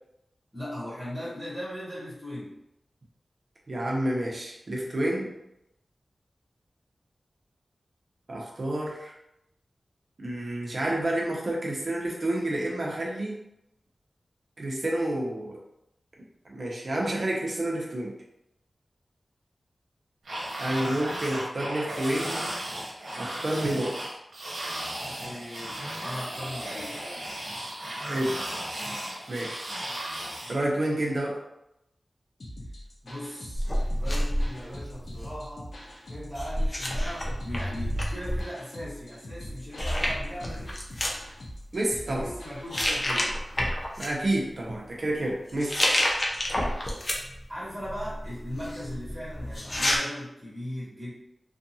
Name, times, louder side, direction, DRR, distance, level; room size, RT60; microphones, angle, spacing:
voice 1, 0.5-2.5 25.1-27.0 33.0-33.6 34.0-35.7 36.1-40.8 42.0-43.4 47.5-51.1, equal, 20° right, -9 dB, 1.2 m, -38 dB
voice 2, 3.7-5.3 8.3-9.1 10.2-13.4 14.6-15.6 16.4-18.1 20.6-22.5 23.2-24.1 28.1-28.4 29.3-29.6 30.5-31.4 41.7-42.2 44.0-45.9, right 1 dB, 55° right, -2 dB, 0.7 m, -29 dB
sound 1, 20.2-30.6, right 1 dB, 85° right, 0.8 m, -35 dB
sound 2, 32.4-43.1, equal, 75° left, 0.6 m, -43 dB
sound 3, 33.5-35.4 36.3-38.4 39.4-39.5 39.8-41.2 41.9-42.3 42.7-44.1 45.5-47.4 47.8-50.0, equal, 35° left, 0.5 m, -29 dB
2.7 x 2.5 x 2.7 m, 0.84 s
wide cardioid pair, 90°, 0 cm